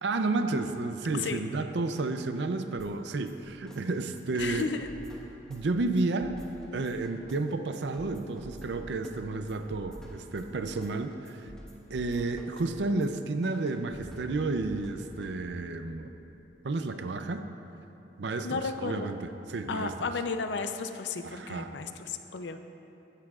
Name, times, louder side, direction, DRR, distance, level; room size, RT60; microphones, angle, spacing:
voice 1, 0.0-4.7 5.5-6.4 6.7-11.5 11.9-16.1 16.6-17.5 18.2-19.9 21.2-21.7, right 3 dB, 75° right, 8 dB, 0.5 m, -31 dB
sound 1, 2.8-15.8, equal, 5° left, 1.3 m, -49 dB
voice 2, 4.3-4.9 18.4-19.1 19.7-22.6, left 4 dB, 85° left, 8 dB, 0.6 m, -33 dB
15.0 x 11.0 x 2.4 m, 2.9 s
head